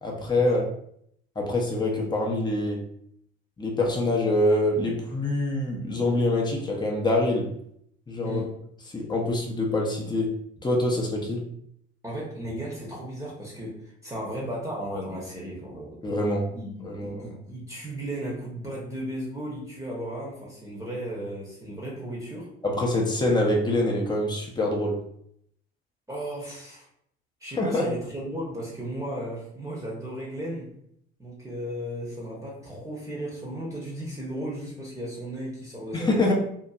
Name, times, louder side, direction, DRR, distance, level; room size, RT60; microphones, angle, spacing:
voice 1, 0.0-0.6 1.4-2.9 3.6-7.5 8.1-8.4 8.9-10.3 10.6-11.4 16.0-16.5 16.8-17.3 22.6-25.0 27.6-27.9 35.9-36.3, left 1 dB, 15° left, -1 dB, 0.8 m, -25 dB
voice 2, 12.0-16.0 16.5-22.5 26.1-26.9 27.4-30.7 31.2-36.3, right 1 dB, 10° right, -5 dB, 1.0 m, -35 dB
2.8 x 2.5 x 2.4 m, 0.70 s
hypercardioid pair, 60°, 31 cm